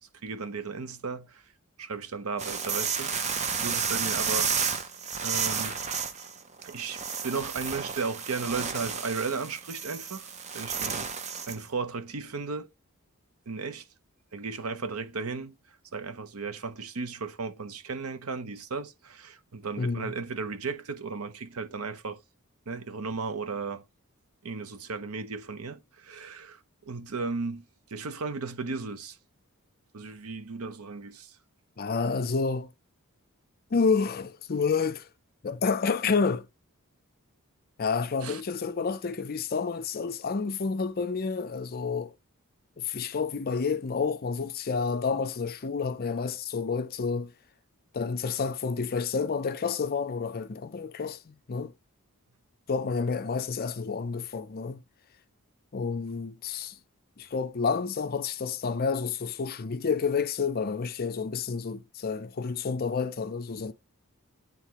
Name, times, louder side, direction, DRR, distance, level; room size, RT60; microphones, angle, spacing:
voice 1, 0.2-1.4 1.8-4.9 5.2-5.8 6.6-10.3 10.5-11.1 11.5-12.7 13.5-13.8 14.3-15.6 15.9-22.2 22.7-23.8 24.4-27.6 27.9-29.2 29.9-31.3 38.2-38.4, right 4 dB, 75° right, 0.8 m, -35 dB
sound 1, 2.4-11.6, right 6 dB, 30° right, 0.7 m, -32 dB
voice 2, 19.8-20.1 31.8-32.7 33.7-35.1 35.4-36.5 37.8-42.1 42.8-47.3 47.9-51.7 52.7-54.8 55.7-56.8 57.2-63.7, left 5 dB, 45° left, 0.5 m, -29 dB
9.2 x 3.6 x 2.9 m
head